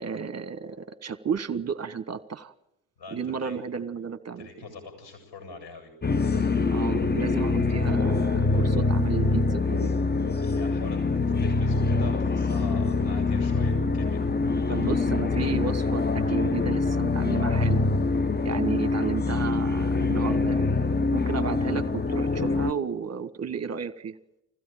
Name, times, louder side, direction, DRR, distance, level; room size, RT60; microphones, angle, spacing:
voice 1, 0.0-2.5 3.1-4.5 6.7-9.9 14.7-17.9 18.4-20.7 21.1-24.2, right 6 dB, 35° right, 14 dB, 1.3 m, -33 dB
voice 2, 3.0-3.6 4.4-5.9 10.4-14.2 14.7-14.8, left 4 dB, 65° left, 6 dB, 7.9 m, -43 dB
sound 1, 6.0-22.7, left 3 dB, 20° left, 1.0 m, -24 dB
20.5 x 15.5 x 9.1 m, 0.84 s
hypercardioid pair, 45°, 46 cm